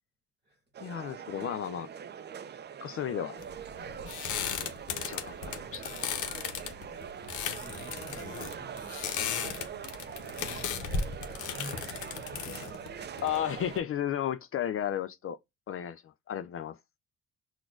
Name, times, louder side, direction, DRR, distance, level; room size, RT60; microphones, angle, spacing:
sound 1, 0.7-13.8, right 8 dB, 35° right, 0.4 m, -43 dB
voice 1, 0.8-1.9 2.8-3.4 5.0-5.8 13.2-15.4 15.7-16.8, left 10 dB, 45° left, 0.4 m, -33 dB
sound 2, 3.4-13.8, left 6 dB, 80° left, 0.8 m, -36 dB
voice 2, 5.6-6.0 7.2-9.7 10.0-11.1 11.4-13.2, right 1 dB, 15° right, 1.3 m, -51 dB
5.9 x 2.4 x 2.4 m
cardioid pair, 90°, 30 cm